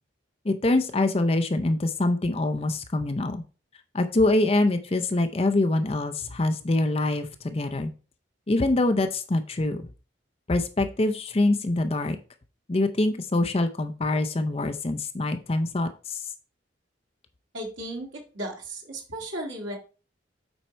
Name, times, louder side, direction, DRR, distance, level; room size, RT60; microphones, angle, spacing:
voice 1, 0.4-3.4 3.9-7.9 8.5-9.9 10.5-12.2 12.7-16.3, left 2 dB, 30° left, 8 dB, 0.5 m, -24 dB
voice 2, 17.5-19.8, right 1 dB, 85° right, -1 dB, 2.0 m, -35 dB
8.0 x 4.5 x 4.3 m, 0.35 s
head